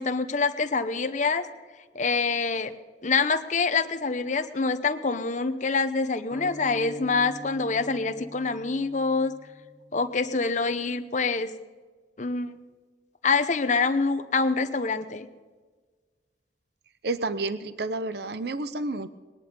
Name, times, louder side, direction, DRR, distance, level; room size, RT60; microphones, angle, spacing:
voice 1, 0.0-1.4 1.9-2.7 3.0-9.3 9.9-11.5 12.2-12.5 13.2-15.3, left 4 dB, 45° left, 10 dB, 0.8 m, -26 dB
sound 1, 6.3-10.2, equal, 10° left, 1.4 m, -44 dB
voice 2, 17.0-19.1, right 2 dB, 65° right, 14 dB, 0.6 m, -30 dB
19.5 x 10.5 x 5.3 m, 1.4 s
head